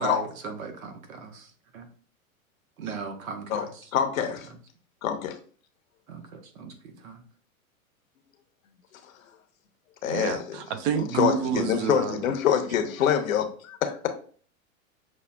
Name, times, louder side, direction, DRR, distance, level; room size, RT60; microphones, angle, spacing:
voice 1, 0.0-1.9 2.8-3.9 4.2-4.6 6.1-7.2, right 4 dB, 75° right, 1.0 m, -38 dB
voice 2, 3.9-4.5 5.0-5.4 10.0-10.6 11.0-14.1, left 9 dB, 70° left, 0.8 m, -25 dB
voice 3, 10.0-12.4, right 7 dB, 40° right, 0.6 m, -29 dB
6.1 x 2.2 x 2.2 m
hypercardioid pair, 105°, 42 cm